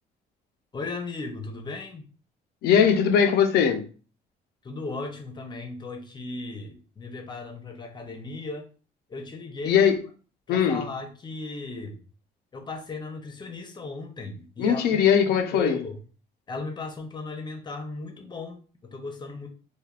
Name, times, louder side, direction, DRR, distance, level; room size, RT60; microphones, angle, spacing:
voice 1, 0.7-2.0 4.6-8.7 9.1-9.8 10.5-12.0 12.5-16.0 16.5-19.5, left 3 dB, 25° left, 0.6 m, -36 dB
voice 2, 2.6-3.9 9.7-10.0 10.5-10.8 14.6-15.8, left 8 dB, 75° left, 0.5 m, -20 dB
3.3 x 2.2 x 2.4 m
cardioid pair, 110°, 17 cm